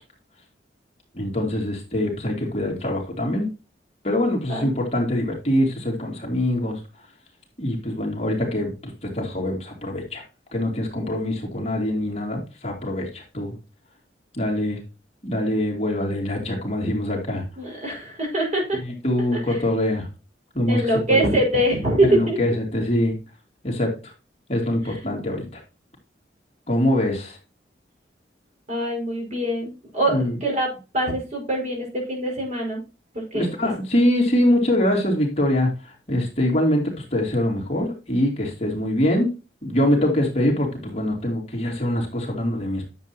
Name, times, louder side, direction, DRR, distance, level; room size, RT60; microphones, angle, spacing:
voice 1, 1.1-3.5 4.0-6.8 7.6-10.2 10.5-13.5 14.3-14.8 15.2-17.4 18.8-20.1 20.5-20.8 21.1-21.2 22.0-23.1 23.6-24.1 24.5-25.6 26.7-27.4 30.1-30.4 33.3-39.3 39.6-42.8, left 1 dB, 35° left, 0 dB, 2.9 m, -24 dB
voice 2, 17.6-18.8 19.3-19.6 20.7-22.4 24.9-25.0 28.7-32.8 33.1-33.7, right 1 dB, 40° right, -1 dB, 5.3 m, -24 dB
10.5 x 7.7 x 2.9 m, 0.31 s
head